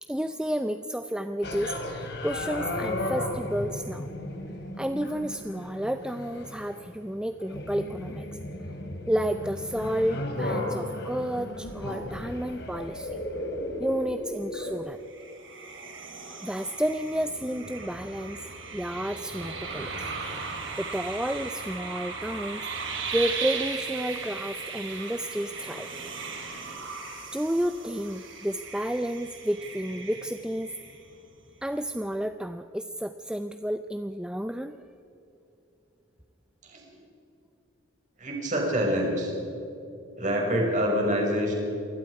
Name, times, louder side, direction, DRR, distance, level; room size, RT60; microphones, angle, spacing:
voice 1, 0.0-4.1 4.8-8.3 9.1-13.2 13.8-15.0 16.3-18.5 18.7-20.1 20.8-22.7 23.1-25.9 27.3-30.8 31.6-34.8, equal, 5° right, 9 dB, 0.4 m, -31 dB
sound 1, 1.4-14.8, left 1 dB, 55° left, 3.2 m, -35 dB
sound 2, 15.0-31.3, right 4 dB, 65° right, 4.4 m, -37 dB
voice 2, 38.2-39.3 40.2-41.5, equal, 40° right, -1 dB, 5.7 m, -26 dB
27.5 x 20.5 x 4.8 m, 2.9 s
head